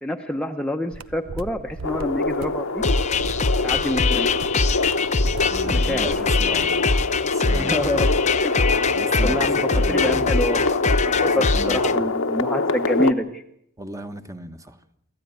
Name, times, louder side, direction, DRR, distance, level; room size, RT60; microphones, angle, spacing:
voice 1, 0.0-2.8 3.6-4.3 5.6-6.3 7.5-8.1 8.4-8.7 9.2-13.4, left 1 dB, 5° left, 3 dB, 0.9 m, -27 dB
sound 1, 0.9-6.8, right 2 dB, 70° right, 0.8 m, -38 dB
sound 2, 1.8-13.1, left 3 dB, 70° left, 1.1 m, -24 dB
sound 3, 2.8-11.9, left 4 dB, 30° left, 0.8 m, -23 dB
voice 2, 5.5-6.8 7.1-8.1 8.9-10.2 11.2-12.0 13.8-14.8, right 1 dB, 15° right, 7 dB, 1.4 m, -36 dB
25.0 x 14.5 x 9.2 m, 0.75 s
head